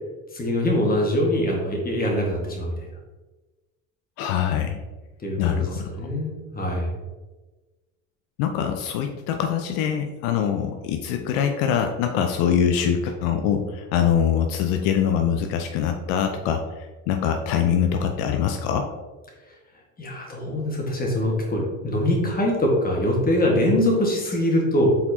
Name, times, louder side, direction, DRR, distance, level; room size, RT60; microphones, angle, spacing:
voice 1, 0.3-2.9 5.2-7.0 20.0-25.0, left 1 dB, 25° left, -1 dB, 1.4 m, -23 dB
voice 2, 4.2-4.8 5.4-5.9 8.4-18.9, left 8 dB, 75° left, 5 dB, 0.5 m, -23 dB
4.2 x 4.1 x 2.6 m, 1.2 s
supercardioid pair, 85°, 36 cm